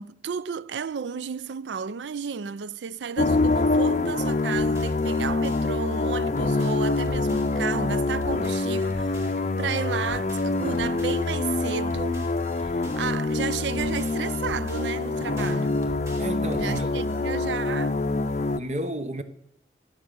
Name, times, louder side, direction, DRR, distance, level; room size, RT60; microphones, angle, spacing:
voice 1, 0.0-12.3 12.6-15.8 16.6-18.0, right 6 dB, 90° right, 0.4 m, -33 dB
sound 1, 3.2-18.6, left 3 dB, 40° left, 0.5 m, -25 dB
sound 2, 4.3-17.2, equal, 15° right, 2.4 m, -45 dB
voice 2, 16.2-16.9 18.6-19.2, right 1 dB, 40° right, 1.0 m, -31 dB
14.5 x 9.1 x 6.9 m
head